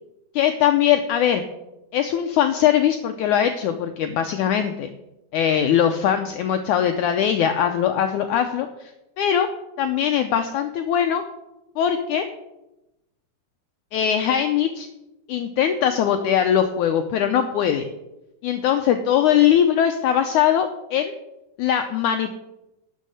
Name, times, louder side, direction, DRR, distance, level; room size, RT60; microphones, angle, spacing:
voice 1, 0.3-1.4 1.9-4.9 5.3-8.9 9.2-9.5 9.8-11.2 11.8-12.3 13.9-14.9 15.3-17.9 18.4-21.1 21.6-22.4, left 9 dB, 80° left, 6 dB, 1.7 m, -21 dB
12.0 x 6.3 x 7.7 m, 0.94 s
omnidirectional pair, 4.2 m